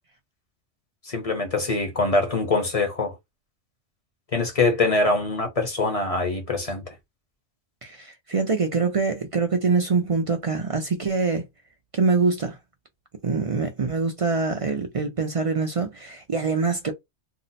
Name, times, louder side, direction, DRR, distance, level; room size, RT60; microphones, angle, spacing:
voice 1, 1.0-3.2 4.3-6.9, left 3 dB, 35° left, 0.8 m, -24 dB
voice 2, 7.8-11.5 11.9-12.6 13.2-16.9, right 4 dB, 55° right, 0.3 m, -24 dB
2.7 x 2.0 x 4.0 m
omnidirectional pair, 1.3 m